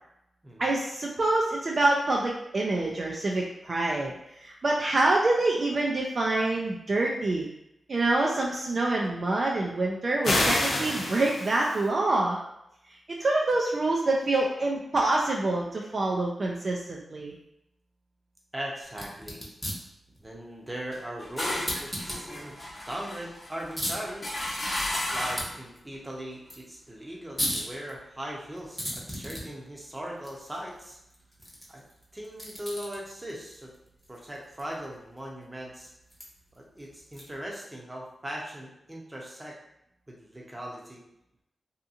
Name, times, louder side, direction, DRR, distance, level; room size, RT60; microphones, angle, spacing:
voice 1, 0.6-4.1 4.4-7.5 7.9-12.4 13.1-17.3, right 2 dB, 50° right, -2 dB, 0.4 m, -26 dB
sound 1, 10.2-11.8, left 1 dB, 75° left, 0.5 m, -27 dB
voice 2, 18.5-19.5 20.2-22.5 22.9-24.3 25.1-31.0 31.7-31.8 32.1-33.7 34.1-35.9 36.6-39.6 40.1-41.0, right 1 dB, 20° right, -3 dB, 0.7 m, -39 dB
sound 2, 18.9-37.5, equal, 5° left, 0.8 m, -40 dB
sound 3, 20.9-25.6, left 1 dB, 40° left, 0.8 m, -34 dB
2.7 x 2.5 x 2.5 m, 0.80 s
cardioid pair, 80°, 0 cm